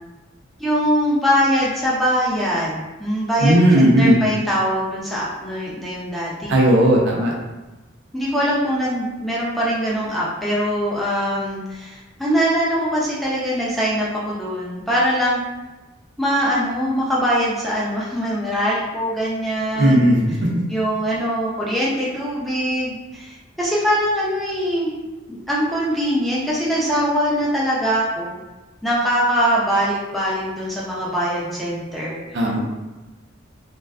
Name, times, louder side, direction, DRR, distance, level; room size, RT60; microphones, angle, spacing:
voice 1, 0.6-6.6 8.1-15.4 16.2-20.1 20.7-24.9 25.3-28.4 28.8-32.4, equal, ahead, -7 dB, 0.3 m, -22 dB
voice 2, 3.4-4.2 6.5-7.3 19.8-20.2 32.3-32.6, right 1 dB, 60° right, -2 dB, 0.5 m, -15 dB
2.4 x 2.2 x 2.3 m, 1.1 s
head